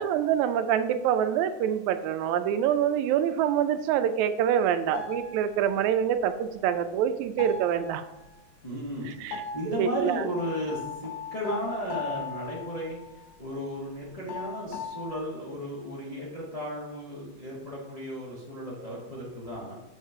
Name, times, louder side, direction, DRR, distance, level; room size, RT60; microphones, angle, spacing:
voice 1, 0.0-8.0 9.2-9.4 9.7-10.2, right 9 dB, 85° right, 10 dB, 1.9 m, -26 dB
sound 1, 4.9-5.9 6.2-7.0 7.4-8.5 9.3-13.6 13.9-14.0 14.3-15.2, left 6 dB, 80° left, 1.9 m, -39 dB
voice 2, 8.6-19.7, equal, 35° left, -6 dB, 0.5 m, -35 dB
6.5 x 4.3 x 4.4 m, 0.91 s
omnidirectional pair, 3.4 m